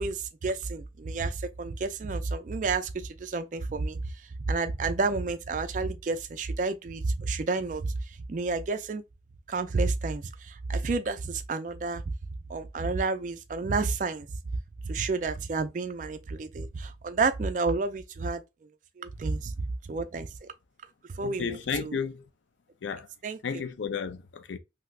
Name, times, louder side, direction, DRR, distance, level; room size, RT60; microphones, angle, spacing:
voice 1, 0.0-4.1 4.5-9.0 9.5-12.0 12.5-14.3 14.8-18.4 19.0-20.5 21.1-22.0 23.2-23.6, right 3 dB, 45° right, 0.3 m, -30 dB
voice 2, 21.2-22.3 22.8-23.1 23.4-24.6, left 6 dB, 80° left, 0.4 m, -33 dB
3.3 x 2.7 x 2.3 m
head